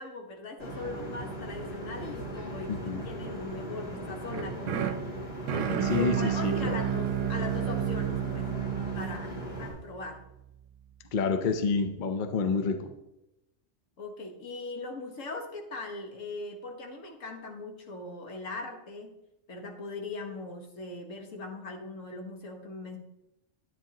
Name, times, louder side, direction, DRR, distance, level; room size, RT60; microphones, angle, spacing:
voice 1, 0.0-5.0 5.5-8.5 8.9-10.2 14.0-19.1 19.5-23.0, left 2 dB, 85° left, 3 dB, 1.6 m, -40 dB
sound 1, 0.6-9.7, right 1 dB, 30° left, 2.6 m, -39 dB
voice 2, 2.7-3.1 5.8-6.7 11.1-12.8, left 4 dB, 45° left, 7 dB, 0.8 m, -28 dB
sound 2, 4.3-10.4, right 9 dB, 80° right, 0.9 m, -31 dB
10.0 x 9.0 x 2.9 m, 0.90 s
omnidirectional pair, 1.3 m